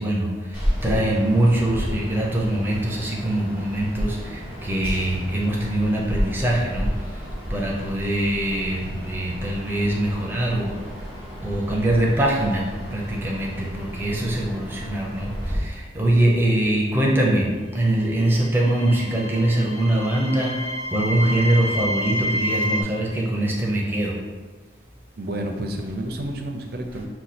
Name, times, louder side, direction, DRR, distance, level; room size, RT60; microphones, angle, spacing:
voice 1, 0.0-7.2 7.5-11.0 11.4-24.2 25.8-25.9 26.9-27.1, right 1 dB, 10° right, -3 dB, 0.6 m, -23 dB
sound 1, 0.5-15.6, equal, 25° left, 1.2 m, -32 dB
sound 2, 17.9-22.8, equal, 60° left, 0.5 m, -29 dB
voice 2, 25.2-27.0, right 1 dB, 55° right, 4 dB, 0.5 m, -30 dB
4.9 x 2.3 x 4.2 m, 1.4 s
head